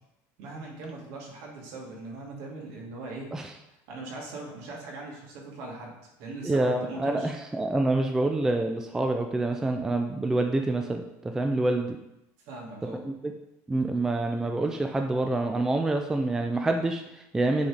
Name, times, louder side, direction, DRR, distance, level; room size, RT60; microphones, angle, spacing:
voice 1, 0.4-3.3 3.9-7.3 12.4-13.0, right 2 dB, 65° right, -2 dB, 2.3 m, -40 dB
voice 2, 6.4-12.0 13.0-13.3 13.7-17.7, right 2 dB, 5° right, 4 dB, 0.4 m, -27 dB
8.7 x 4.1 x 5.0 m, 0.90 s
cardioid pair, 170°, 7 cm